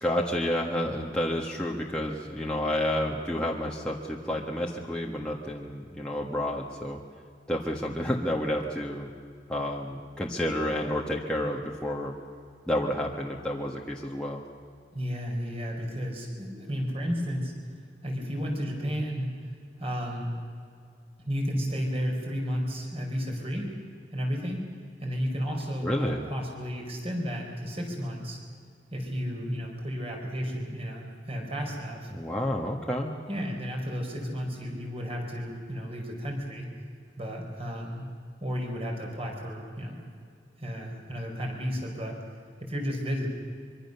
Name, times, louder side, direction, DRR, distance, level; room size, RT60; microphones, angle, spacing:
voice 1, 0.0-7.0 7.5-9.1 9.5-12.1 12.7-14.4 25.8-26.3 32.1-33.1, left 1 dB, 5° left, -2 dB, 1.5 m, -30 dB
voice 2, 14.9-17.5 18.0-19.3 19.8-20.4 21.3-23.7 24.1-24.6 25.0-28.4 28.9-32.1 33.3-36.7 37.2-38.1 38.4-40.0 40.6-42.2 42.6-43.3, equal, 35° right, 1 dB, 5.0 m, -32 dB
24.5 x 24.0 x 6.9 m, 2.2 s
head